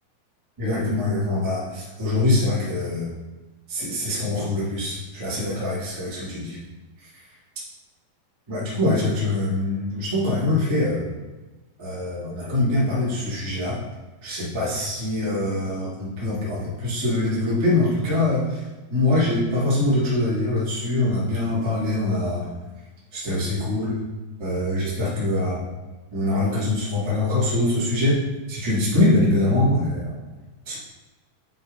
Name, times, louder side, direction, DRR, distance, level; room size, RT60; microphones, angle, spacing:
voice 1, 0.6-3.1 3.7-6.6 7.0-7.2 8.5-11.1 11.8-13.8 14.2-18.6 18.9-22.4 23.1-24.0 24.4-25.6 26.1-28.2 28.5-30.1 30.7-30.8, left 2 dB, 30° right, -8 dB, 0.5 m, -23 dB
9.0 x 3.9 x 3.6 m, 1.2 s
omnidirectional pair, 4.5 m